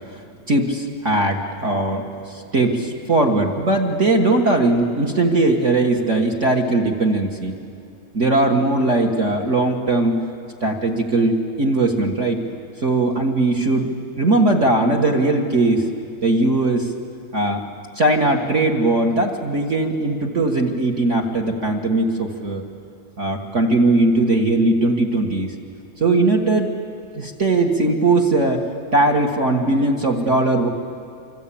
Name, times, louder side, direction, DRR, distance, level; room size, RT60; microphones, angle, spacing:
voice 1, 0.5-7.6 8.1-10.2 10.6-12.4 12.8-15.9 16.2-16.9 17.3-17.6 17.9-22.6 23.2-25.5 26.0-26.7 27.2-30.7, right 2 dB, 35° right, 3 dB, 1.2 m, -19 dB
26.0 x 24.5 x 8.6 m, 2.5 s
omnidirectional pair, 3.3 m